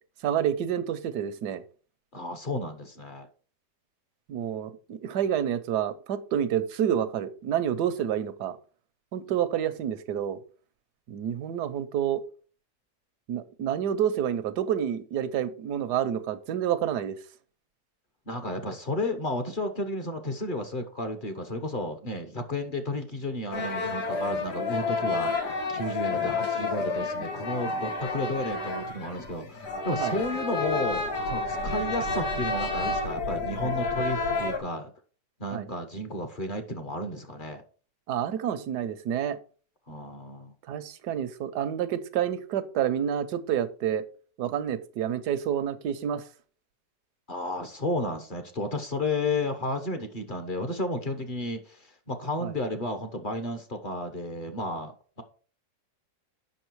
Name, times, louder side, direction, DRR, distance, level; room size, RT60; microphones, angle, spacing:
voice 1, 0.2-1.6 4.3-8.6 9.1-10.4 11.1-12.2 13.3-17.2 30.0-30.2 35.5-35.7 38.1-39.4 40.7-44.0 44.4-46.2 52.4-52.5, right 9 dB, 80° right, 1.4 m, -28 dB
voice 2, 2.1-3.3 18.3-25.3 25.7-34.9 35.4-37.6 39.9-40.5 47.3-55.2, left 1 dB, 35° left, 1.1 m, -32 dB
sound 1, 23.5-34.6, left 3 dB, 85° left, 2.3 m, -30 dB
8.0 x 6.1 x 4.6 m
omnidirectional pair, 1.7 m